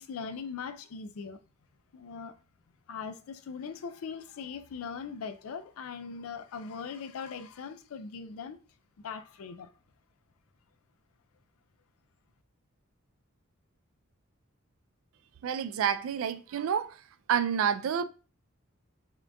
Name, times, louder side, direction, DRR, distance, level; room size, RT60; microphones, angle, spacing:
voice 1, 0.0-1.4 1.9-2.3 2.9-8.6 9.0-9.7, left 5 dB, 80° left, 0.4 m, -40 dB
voice 2, 15.4-17.0 17.3-18.0, right 8 dB, 70° right, 0.3 m, -29 dB
3.6 x 3.4 x 2.6 m
head